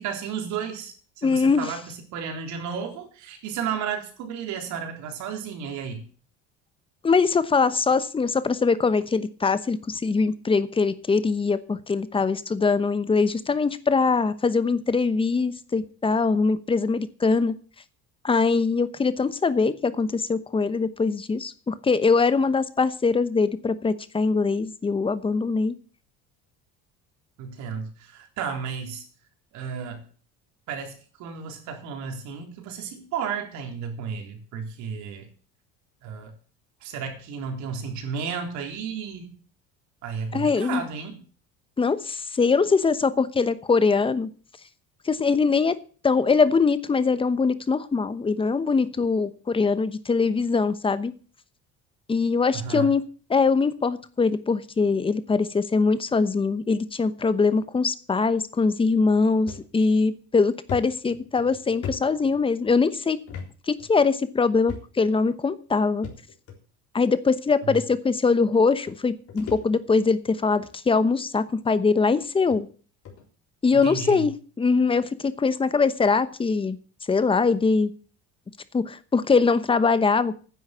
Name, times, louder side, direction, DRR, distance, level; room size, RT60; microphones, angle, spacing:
voice 1, 0.0-6.0 27.4-29.0 29.5-30.0 30.7-35.3 36.0-36.3 36.8-39.4 40.0-41.2 52.5-52.9 67.6-67.8 73.7-74.3, right 6 dB, 65° right, 4 dB, 3.8 m, -33 dB
voice 2, 1.2-1.7 7.0-17.5 18.2-25.8 40.3-40.9 41.8-44.3 45.0-45.8 46.0-51.1 52.1-53.0 53.3-63.2 63.7-66.1 66.9-72.7 73.6-76.8 77.1-77.9 78.7-80.4, left 4 dB, 15° left, 14 dB, 1.0 m, -22 dB
sound 1, 59.5-59.7 60.1-60.2 60.7-62.7 63.3-63.5 63.8-63.9 64.7-65.1 66.0-66.6 67.5-67.6 68.5-68.6 68.9-70.1 70.5-70.8 71.5-71.6 72.1-72.2 72.5-72.6 73.0-73.2, left 6 dB, 50° left, 3.8 m, -39 dB
10.5 x 8.0 x 8.3 m, 0.41 s
cardioid pair, 125°, 30 cm